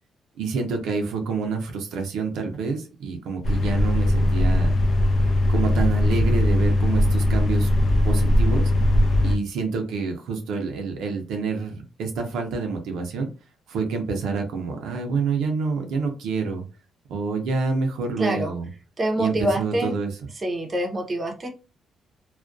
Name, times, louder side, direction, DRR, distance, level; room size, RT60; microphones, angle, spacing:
voice 1, 0.4-4.7 5.5-7.7 8.0-8.7 9.2-13.3 13.7-16.6 17.1-18.7 19.2-20.1, right 4 dB, 80° right, 3 dB, 0.5 m, -27 dB
sound 1, 3.4-9.4, left 1 dB, 50° left, 0.5 m, -20 dB
voice 2, 18.2-18.6 19.0-20.0 20.4-21.5, right 1 dB, 30° right, 3 dB, 0.6 m, -26 dB
2.3 x 2.1 x 2.4 m, 0.33 s
cardioid pair, 90°, 0 cm